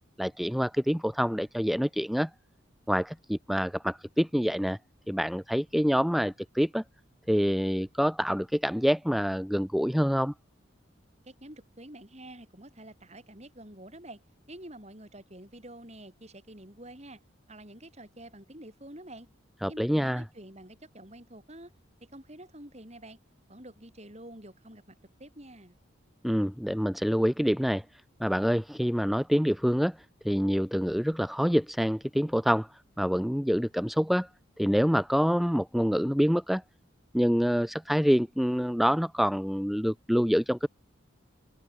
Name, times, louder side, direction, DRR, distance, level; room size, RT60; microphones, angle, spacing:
voice 1, 0.2-2.3 2.9-4.8 5.1-6.8 7.3-10.3 19.6-20.2 26.2-27.8 28.2-34.3 34.6-36.6 37.1-40.7, equal, ahead, 0.6 m, -26 dB
voice 2, 11.2-14.2 14.5-17.2 17.5-19.3 19.7-21.7 22.0-23.2 23.5-25.8, right 1 dB, 35° right, 6.3 m, -48 dB
head